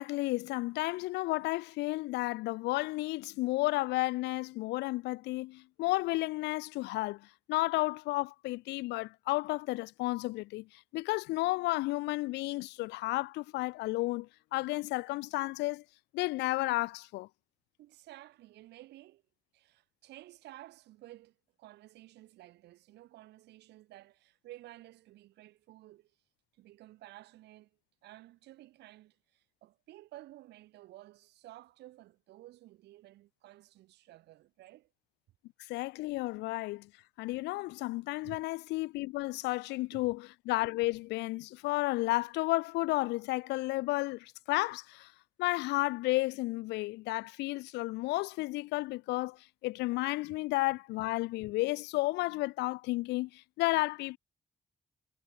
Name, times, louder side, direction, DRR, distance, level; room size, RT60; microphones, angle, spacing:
voice 1, 0.0-15.8 16.1-17.3 35.7-36.9 37.2-45.1 45.4-54.2, left 20 dB, 85° left, 0.5 m, -32 dB
voice 2, 17.8-19.2 19.5-26.1 26.5-27.7 28.0-34.9 38.2-38.4 39.9-40.1, right 16 dB, 85° right, 2.8 m, -53 dB
hypercardioid pair, 40°, 17 cm